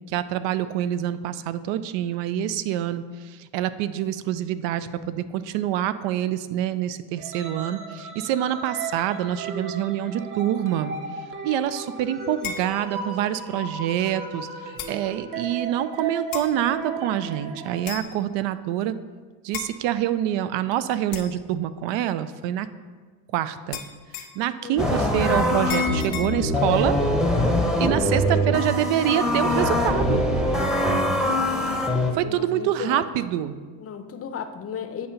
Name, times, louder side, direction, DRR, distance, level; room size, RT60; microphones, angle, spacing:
voice 1, 0.1-10.9 11.4-19.0 19.4-22.7 23.3-23.8 24.3-27.0 27.8-30.2 32.1-33.6, right 11 dB, 70° right, 14 dB, 0.5 m, -26 dB
sound 1, 7.2-17.8, right 4 dB, 40° right, 1.1 m, -35 dB
sound 2, 12.4-12.7 13.8-13.9 14.8-15.0 16.3-16.5 17.8-18.2 19.5-19.7 21.1-21.4 23.7-24.4 25.7-26.3, left 7 dB, 75° left, 0.8 m, -33 dB
voice 2, 24.6-25.0 28.2-28.6 32.2-33.0 33.8-35.1, left 7 dB, 30° left, 7 dB, 0.6 m, -34 dB
sound 3, 24.8-32.1, left 1 dB, ahead, 0.8 m, -23 dB
8.3 x 2.8 x 5.6 m, 1.5 s
supercardioid pair, 90°, 47 cm